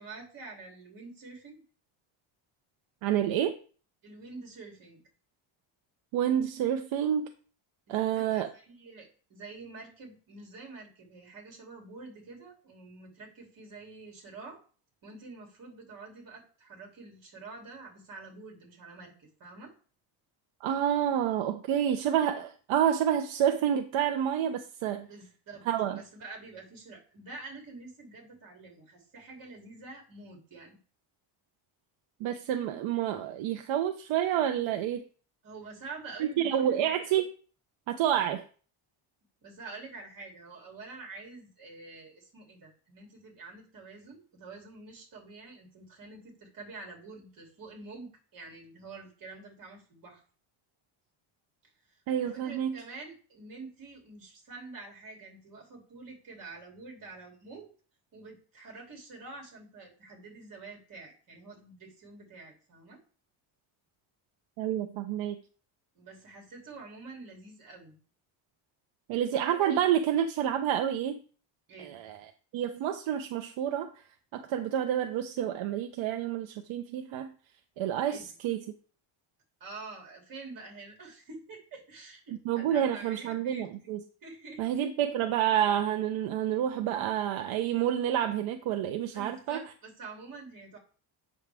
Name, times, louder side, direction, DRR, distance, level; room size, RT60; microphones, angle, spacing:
voice 1, 0.0-1.6 4.0-5.0 7.9-14.6 15.0-19.7 25.0-30.8 35.4-37.0 39.4-50.2 51.9-57.7 58.1-63.0 65.9-68.0 71.7-72.0 78.1-78.3 79.6-83.8 84.2-84.6 89.1-90.8, right 3 dB, 45° right, 0 dB, 2.8 m, -47 dB
voice 2, 3.0-3.5 6.1-7.3 7.9-8.5 20.6-25.1 25.7-26.0 32.2-35.0 36.2-37.3 37.9-38.4 52.1-52.8 64.6-65.4 69.1-71.2 71.8-72.3 72.5-73.9 74.3-77.3 77.8-78.6 82.5-84.0 84.6-89.6, right 10 dB, 75° right, 6 dB, 0.8 m, -29 dB
8.4 x 6.3 x 3.4 m, 0.40 s
cardioid pair, 175°, 48 cm